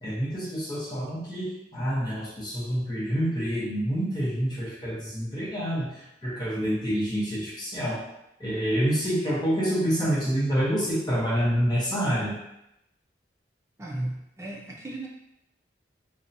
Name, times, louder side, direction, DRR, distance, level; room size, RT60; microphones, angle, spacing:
voice 1, 0.0-8.0 8.4-12.3, equal, 25° left, -7 dB, 0.8 m, -27 dB
voice 2, 13.8-15.1, right 1 dB, 15° right, -1 dB, 0.3 m, -35 dB
2.7 x 2.2 x 2.6 m, 0.85 s
head